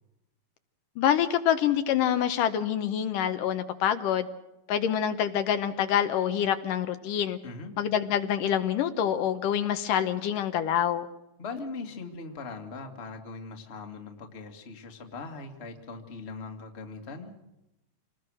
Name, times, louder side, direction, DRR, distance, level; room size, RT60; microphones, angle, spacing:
voice 1, 1.0-4.3 4.7-7.4 7.8-11.1, left 9 dB, 75° left, 9 dB, 2.5 m, -26 dB
voice 2, 11.4-17.4, left 3 dB, 25° left, 3 dB, 1.8 m, -40 dB
27.0 x 20.0 x 6.3 m, 0.90 s
omnidirectional pair, 4.0 m